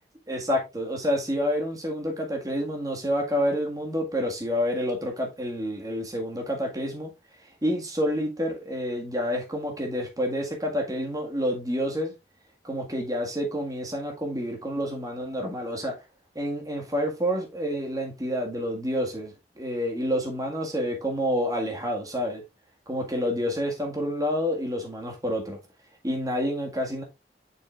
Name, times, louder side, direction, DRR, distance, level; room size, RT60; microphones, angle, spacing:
voice 1, 0.3-7.1 7.6-12.1 12.6-15.9 16.4-22.4 22.9-25.6 26.0-27.0, equal, 20° right, 1.8 m, -28 dB
7.5 x 6.1 x 2.5 m
head